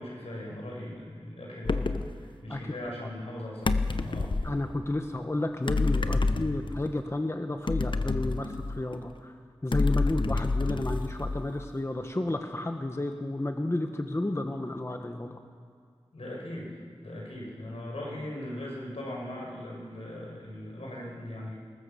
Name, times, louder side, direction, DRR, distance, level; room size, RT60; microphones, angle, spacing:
voice 1, 0.0-4.5 5.9-6.3 16.1-16.7 17.0-21.5, left 1 dB, 85° left, -2 dB, 6.4 m, -39 dB
sound 1, 1.6-2.1 3.6-4.6 5.7-6.9 7.7-9.0 9.7-11.6, left 3 dB, 55° left, 0.9 m, -28 dB
voice 2, 4.4-9.3 9.6-15.4, left 1 dB, 25° left, 5 dB, 1.3 m, -32 dB
23.5 x 19.5 x 7.1 m, 2.2 s
wide cardioid pair, 75°, 10 cm